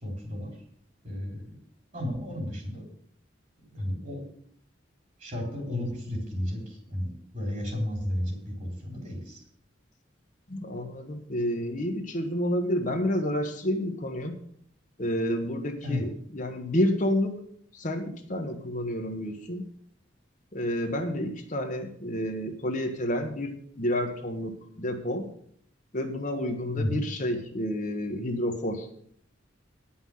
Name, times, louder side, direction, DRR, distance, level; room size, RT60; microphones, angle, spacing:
voice 1, 0.0-0.5 1.0-1.4 1.9-2.9 3.7-4.2 5.2-9.4 15.8-16.0 26.8-27.0, left 1 dB, 40° right, 1 dB, 3.7 m, -33 dB
voice 2, 10.5-14.4 15.0-17.4 17.7-19.6 20.5-25.3 25.9-28.9, left 1 dB, 40° left, 4 dB, 1.2 m, -30 dB
10.0 x 5.7 x 7.7 m, 0.63 s
head